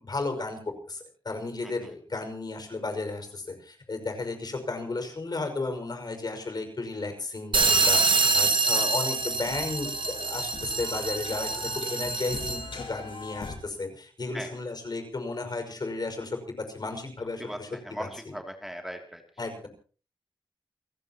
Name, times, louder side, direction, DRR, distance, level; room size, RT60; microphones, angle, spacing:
voice 1, 0.0-17.7 18.0-18.3 19.4-19.7, left 3 dB, 55° left, 6 dB, 5.7 m, -34 dB
sound 1, 7.5-12.8, right 3 dB, 75° right, 1.9 m, -26 dB
sound 2, 8.1-13.6, left 3 dB, 85° left, 4.6 m, -42 dB
voice 2, 17.8-19.2, equal, 5° right, 4 dB, 2.8 m, -38 dB
29.0 x 15.5 x 3.0 m, 0.39 s
wide cardioid pair, 95°, 8 cm